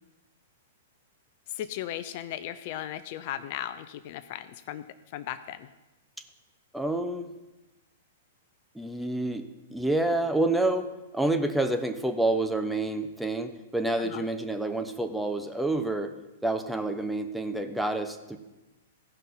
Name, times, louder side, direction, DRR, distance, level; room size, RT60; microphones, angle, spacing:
voice 1, 1.5-4.8 5.1-5.7 14.0-14.2, left 12 dB, 50° left, 13 dB, 0.5 m, -36 dB
voice 2, 6.7-7.3 8.7-16.1 16.4-18.4, right 2 dB, 5° right, 6 dB, 0.8 m, -28 dB
15.0 x 5.5 x 5.5 m, 1.0 s
hypercardioid pair, 110°, 0 cm